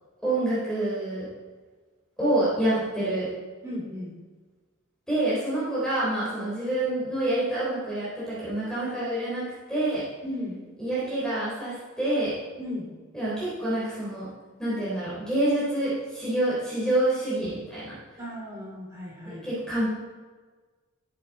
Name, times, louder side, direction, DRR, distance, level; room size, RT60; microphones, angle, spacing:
voice 1, 0.2-1.3 2.2-3.3 5.1-9.4 9.7-10.0 10.8-12.3 13.1-14.3 14.6-17.9 19.2-19.9, right 1 dB, 5° left, -9 dB, 3.8 m, -27 dB
voice 2, 3.6-4.1 10.2-10.6 12.6-12.9 18.2-19.5, left 1 dB, 15° right, -4 dB, 2.9 m, -35 dB
13.5 x 7.6 x 4.1 m, 1.4 s
head